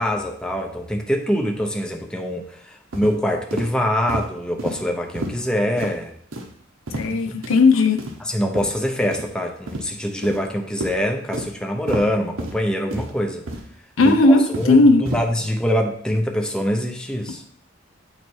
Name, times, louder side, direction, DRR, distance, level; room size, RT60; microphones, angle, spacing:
voice 1, 0.0-6.1 7.1-7.4 8.2-13.5 14.0-17.4, equal, 5° left, 2 dB, 0.7 m, -24 dB
sound 1, 2.9-3.1 3.5-3.7 4.1-4.3 4.6-4.8 5.2-5.4 5.8-5.9 6.3-6.5 6.9-7.1 7.4-7.6 8.0-8.2 8.5-8.7 9.1-9.3 9.7-9.8 10.2-10.5 10.8-11.0 11.3-11.5 11.9-12.0 12.4-12.6 12.9-13.1 13.5-13.7 14.0-14.8 15.1-15.2, right 1 dB, 85° right, 1.0 m, -30 dB
voice 2, 7.0-8.0 14.0-15.0, left 3 dB, 75° left, 6 dB, 0.7 m, -15 dB
8.5 x 3.2 x 4.6 m, 0.64 s
head